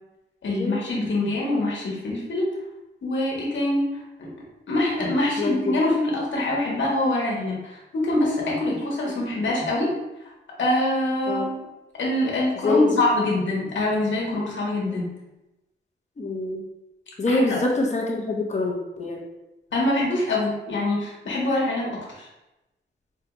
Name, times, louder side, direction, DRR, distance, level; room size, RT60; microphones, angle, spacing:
voice 1, 0.4-2.5 3.0-3.8 4.2-4.3 4.7-9.9 10.6-11.6 12.0-15.1 17.3-17.6 19.7-22.3, left 1 dB, 75° left, -3 dB, 1.2 m, -24 dB
voice 2, 5.4-5.7 11.3-11.5 12.6-12.9 16.2-16.6 17.2-19.2, left 2 dB, 35° left, 0 dB, 0.8 m, -25 dB
4.6 x 2.3 x 3.0 m, 0.98 s
cardioid pair, 85°, 20 cm